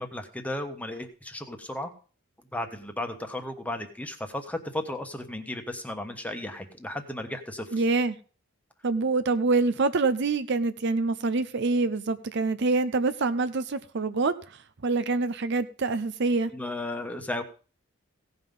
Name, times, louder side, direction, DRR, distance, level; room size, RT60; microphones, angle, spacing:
voice 1, 0.0-1.9 2.5-7.8 16.5-17.4, left 1 dB, 5° left, 1.2 m, -34 dB
voice 2, 7.7-8.2 8.8-16.5, right 3 dB, 55° right, 0.6 m, -26 dB
16.5 x 5.6 x 5.4 m
head